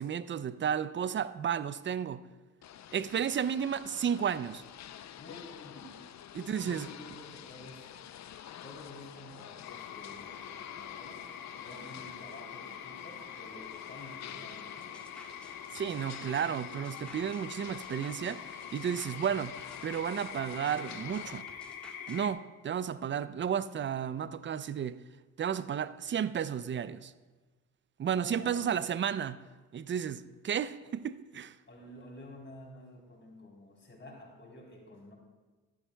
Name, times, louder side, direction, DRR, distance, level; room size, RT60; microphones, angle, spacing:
voice 1, 0.0-2.2 2.9-4.6 6.3-6.9 15.7-19.6 19.8-21.5 22.1-25.0 25.4-27.1 28.0-29.4 29.7-31.6, right 8 dB, 30° right, 0.5 m, -33 dB
sound 1, 2.6-21.4, left 10 dB, 50° left, 0.6 m, -49 dB
voice 2, 5.2-5.9 6.6-8.0 8.6-11.3 11.6-15.0 28.0-28.8 31.7-35.1, left 1 dB, 30° left, 3.7 m, -50 dB
sound 2, 9.6-22.3, left 8 dB, 75° left, 1.0 m, -45 dB
sound 3, 14.8-22.2, equal, 5° left, 1.5 m, -56 dB
14.0 x 11.5 x 2.3 m
supercardioid pair, 55°, 37 cm